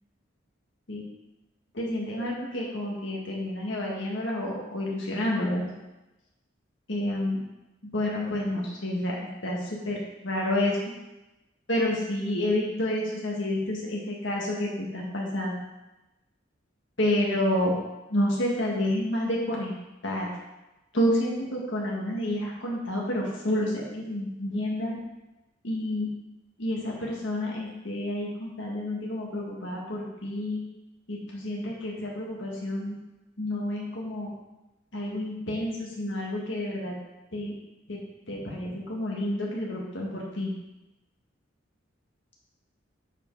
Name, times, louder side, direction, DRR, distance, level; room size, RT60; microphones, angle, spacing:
voice 1, 1.7-5.7 6.9-7.4 7.9-10.8 11.7-15.6 17.0-17.8 18.1-19.7 20.0-20.3 20.9-25.0 25.6-26.1 26.6-30.6 31.1-33.0 33.4-34.3 34.9-36.9 37.3-37.5 37.9-38.0 38.3-40.5, left 1 dB, 65° left, -3 dB, 2.0 m, -29 dB
8.1 x 5.1 x 4.8 m, 1.0 s
head